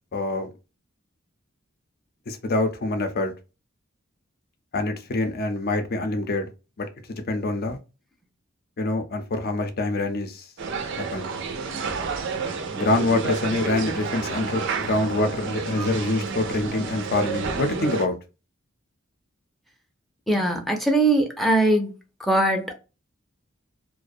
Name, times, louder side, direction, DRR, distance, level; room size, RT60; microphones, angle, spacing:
voice 1, 0.1-0.5 2.3-3.3 4.7-6.5 6.8-7.8 8.8-10.5 10.9-11.3 12.7-18.1, left 2 dB, 50° left, 0.6 m, -25 dB
sound 1, 10.6-18.1, right 5 dB, 65° right, 0.4 m, -30 dB
voice 2, 20.3-21.9 22.2-22.7, right 2 dB, ahead, 0.5 m, -21 dB
2.4 x 2.2 x 2.5 m
head